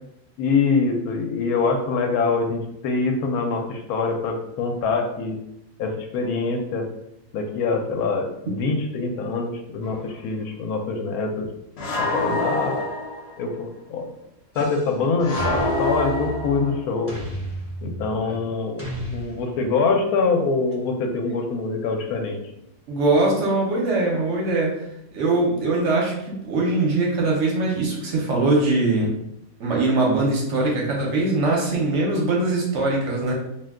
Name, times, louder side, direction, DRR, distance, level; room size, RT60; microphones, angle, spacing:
voice 1, 0.4-5.4 5.8-6.9 7.3-11.5 12.0-12.9 13.4-14.0 14.5-17.1 17.8-18.8 19.1-22.4, left 4 dB, 85° left, 3 dB, 1.1 m, -24 dB
sound 1, 9.8-10.0 11.8-13.4 15.2-16.9, left 1 dB, 60° left, 0.7 m, -26 dB
sound 2, 14.5-15.0 15.4-16.7 17.1-18.2 18.8-19.8, right 1 dB, 15° right, 0.6 m, -33 dB
voice 2, 22.9-24.8 25.1-29.1 29.6-33.3, right 2 dB, 60° right, -2 dB, 1.0 m, -22 dB
2.6 x 2.2 x 3.5 m, 0.81 s
omnidirectional pair, 1.5 m